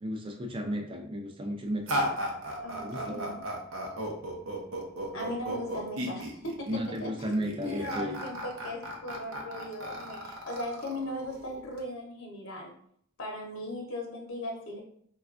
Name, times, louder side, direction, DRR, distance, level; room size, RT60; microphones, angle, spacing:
voice 1, 0.0-2.0 2.8-3.2 6.7-8.2, equal, 25° right, 4 dB, 0.5 m, -34 dB
sound 1, 1.9-11.8, equal, 80° right, 0.7 m, -35 dB
voice 2, 2.6-3.5 5.1-7.3 7.6-12.7 13.2-14.8, left 1 dB, 70° left, 0 dB, 0.7 m, -38 dB
4.1 x 2.3 x 2.4 m, 0.63 s
head